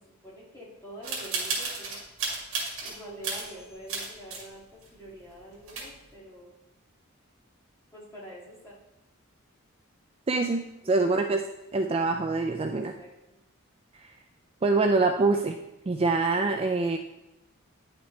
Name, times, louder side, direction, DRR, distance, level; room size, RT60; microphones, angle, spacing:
voice 1, 0.0-2.0 2.8-6.5 7.9-8.7 10.8-11.3 12.7-13.1, right 1 dB, 15° left, -6 dB, 2.2 m, -46 dB
sound 1, 1.0-3.0 3.2-4.4 4.8-4.9 5.4-5.5 5.6-6.1, right 4 dB, 75° right, 2.2 m, -33 dB
voice 2, 10.3-11.4 11.7-12.9 13.9-14.1 14.6-15.6 15.9-17.0, right 3 dB, 25° right, 5 dB, 0.3 m, -25 dB
9.8 x 5.9 x 3.2 m, 0.89 s
head